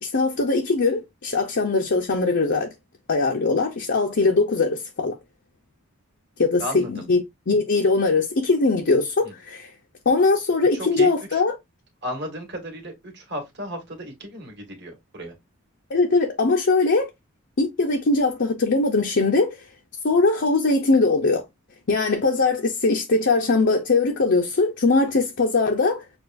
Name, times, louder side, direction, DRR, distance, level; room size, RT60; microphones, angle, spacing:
voice 1, 0.0-2.7 3.1-5.2 6.4-9.7 10.1-11.5 15.9-17.1 17.6-19.6 20.0-21.4 21.9-26.0, left 3 dB, 55° left, 0.6 m, -21 dB
voice 2, 6.6-7.0 9.2-9.3 10.7-11.4 12.0-15.3, equal, 55° right, 1.8 m, -34 dB
6.8 x 2.4 x 2.5 m
head